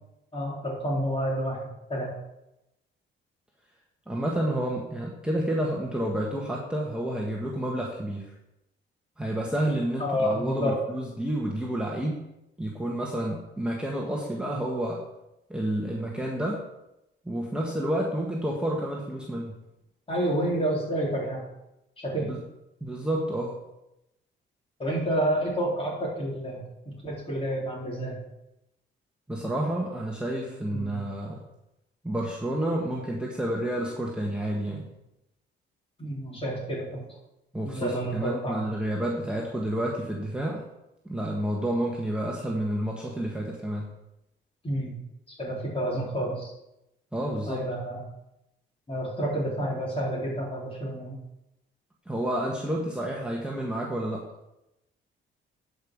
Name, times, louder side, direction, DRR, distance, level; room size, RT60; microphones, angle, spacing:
voice 1, 0.3-1.6 1.9-2.1 10.0-10.8 20.1-21.4 22.0-22.3 24.8-26.6 27.0-28.2 30.7-31.0 36.0-37.0 37.6-38.6 44.6-44.9 45.3-46.5 47.5-48.0 48.9-51.1, equal, 30° left, -4 dB, 4.1 m, -29 dB
voice 2, 4.1-8.3 9.2-12.2 12.6-15.0 15.5-16.6 17.2-19.5 22.2-22.4 22.8-23.5 29.3-31.4 32.0-34.9 37.5-40.6 41.0-43.9 47.1-47.6 52.1-54.3, right 1 dB, 5° right, -3 dB, 1.4 m, -30 dB
11.5 x 5.4 x 4.9 m, 0.89 s
cardioid pair, 90°, 20 cm